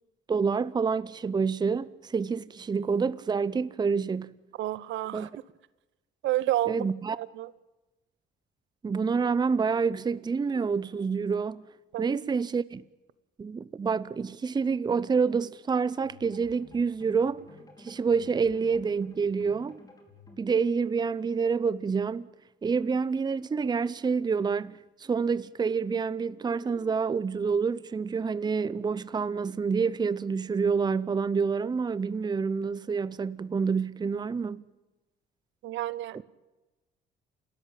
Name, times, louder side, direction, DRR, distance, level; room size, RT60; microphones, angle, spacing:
voice 1, 0.3-4.4 5.1-5.3 6.7-7.2 8.8-11.6 12.0-12.8 13.4-17.4 17.8-19.8 20.4-22.3 22.6-34.6, right 5 dB, 20° right, 0.7 m, -28 dB
voice 2, 4.6-5.3 6.2-6.8 7.2-7.5 11.9-12.2 35.6-36.2, right 14 dB, 80° right, 1.0 m, -30 dB
sound 1, 16.0-21.8, left 3 dB, 20° left, 4.9 m, -54 dB
29.5 x 14.0 x 9.0 m
cardioid pair, 120°, 19 cm